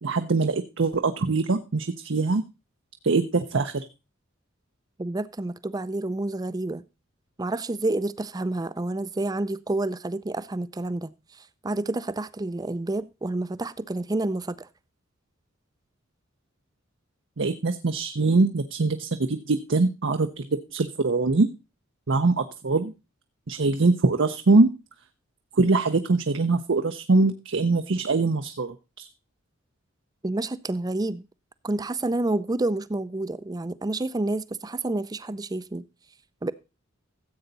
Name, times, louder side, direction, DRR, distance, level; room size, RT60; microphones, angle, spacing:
voice 1, 0.0-2.4 3.0-3.8 17.4-21.5 22.1-22.9 23.5-24.7 25.6-29.1, right 3 dB, 65° right, 0.7 m, -23 dB
voice 2, 5.0-6.8 7.4-11.1 11.4-14.7 30.2-31.2 31.6-35.8 36.4-36.5, right 2 dB, 20° right, 0.5 m, -29 dB
14.5 x 7.9 x 4.0 m
head